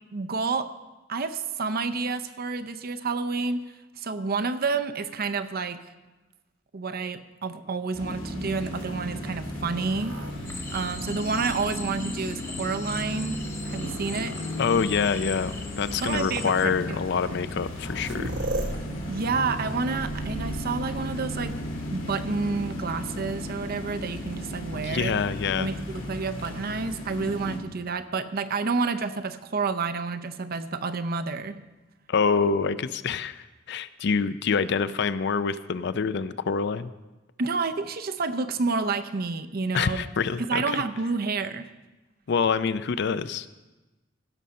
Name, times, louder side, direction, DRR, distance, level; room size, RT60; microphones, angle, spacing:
voice 1, 0.1-0.7 1.1-3.6 4.0-5.8 6.7-10.2 10.7-14.4 16.0-17.0 19.1-21.6 21.9-25.1 25.6-31.6 37.4-40.0 40.4-41.7, right 4 dB, 50° right, 10 dB, 0.6 m, -29 dB
sound 1, 7.9-27.6, left 1 dB, 85° left, 2.3 m, -35 dB
sound 2, 8.7-12.5 13.2-13.9 15.0-15.1 15.9-16.0 17.2-17.3 17.5-21.9 23.9-24.6, right 1 dB, 65° right, 1.0 m, -38 dB
sound 3, 10.4-16.7, left 3 dB, 15° left, 0.9 m, -41 dB
voice 2, 14.6-18.3 24.7-25.7 32.1-36.9 39.7-40.8 42.3-43.5, left 5 dB, 60° left, 14 dB, 0.4 m, -26 dB
16.0 x 5.6 x 6.3 m, 1.1 s
head